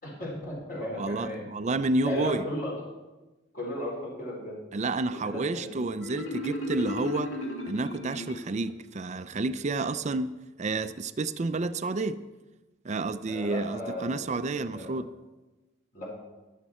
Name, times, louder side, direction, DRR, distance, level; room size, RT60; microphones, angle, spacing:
voice 1, 0.0-1.4 2.0-2.7 3.5-4.6 5.1-5.8 13.2-14.9 15.9-16.1, left 1 dB, 50° left, -3 dB, 4.4 m, -35 dB
voice 2, 1.0-2.4 4.7-7.3 7.7-12.2 12.8-15.1, right 3 dB, 35° right, 12 dB, 0.5 m, -30 dB
Marimba xylophone, 6.0-8.8, left 1 dB, 70° left, 2.4 m, -35 dB
21.5 x 7.4 x 4.3 m, 1.1 s
head